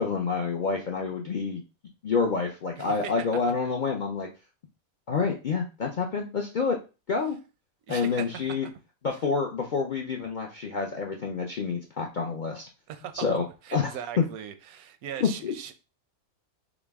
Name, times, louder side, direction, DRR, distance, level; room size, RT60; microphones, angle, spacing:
voice 1, 0.0-1.6 2.0-4.3 5.1-6.8 7.1-7.4 7.9-8.7 9.0-12.6 13.1-13.4 13.7-13.9 15.2-15.5, left 5 dB, 65° left, 0.4 m, -28 dB
voice 2, 2.8-3.1 3.4-3.5 7.9-8.7 12.9-15.7, right 9 dB, 90° right, 1.1 m, -39 dB
5.9 x 2.1 x 3.4 m
omnidirectional pair, 1.5 m